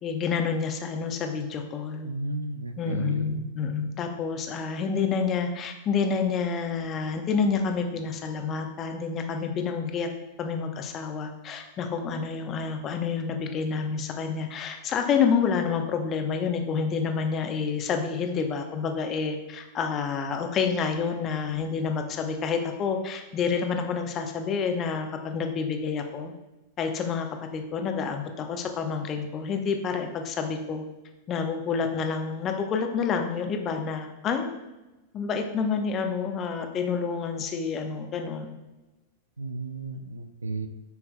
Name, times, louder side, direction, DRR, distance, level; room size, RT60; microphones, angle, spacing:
voice 1, 0.0-2.1 2.8-10.1 10.4-26.3 26.8-27.3 27.5-30.9 31.3-34.5 35.1-38.5, left 5 dB, 35° left, 5 dB, 0.8 m, -28 dB
voice 2, 2.0-3.4 39.4-40.7, right 2 dB, 85° right, 10 dB, 0.4 m, -33 dB
7.6 x 5.7 x 2.2 m, 1.0 s
figure-of-eight pair, 95°, 0 cm